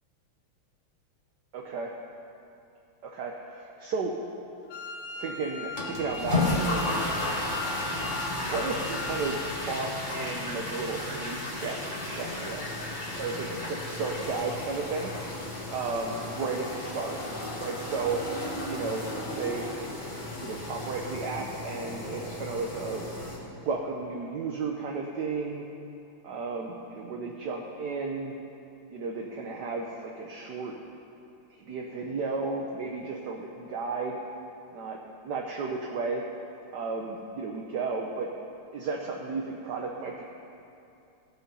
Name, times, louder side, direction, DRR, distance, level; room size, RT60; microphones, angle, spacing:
voice 1, 1.5-1.9 3.0-4.1 5.1-6.8 8.4-11.8 12.0-12.8 13.1-15.1 15.7-17.2 17.5-18.2 18.7-19.0 19.3-19.9 20.4-23.1 23.4-25.6 26.2-28.3 28.9-30.7 31.5-34.2 34.7-35.0 35.2-36.2 36.5-38.3 38.7-40.2, right 4 dB, 65° right, 0 dB, 1.2 m, -33 dB
Wind instrument woodwind instrument, 4.7-9.5, left 3 dB, 75° left, 1.6 m, -39 dB
sound 1, 5.7-23.4, left 2 dB, 25° left, 1.4 m, -34 dB
17.0 x 6.2 x 5.5 m, 2.7 s
omnidirectional pair, 2.3 m